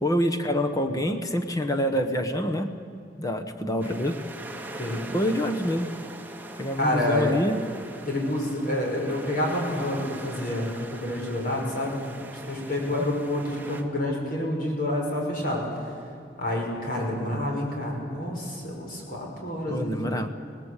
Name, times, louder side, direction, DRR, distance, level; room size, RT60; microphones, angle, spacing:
voice 1, 0.0-2.7 3.2-4.2 5.1-5.9 6.6-7.6 12.9-13.0 19.7-20.3, equal, 20° left, 6 dB, 1.2 m, -26 dB
sound 1, 3.8-13.8, right 1 dB, 10° right, 1.3 m, -41 dB
voice 2, 6.8-7.3 8.1-12.0 12.3-15.6 16.4-20.0, left 1 dB, 50° left, -1 dB, 5.8 m, -28 dB
25.5 x 18.5 x 8.3 m, 2.4 s
head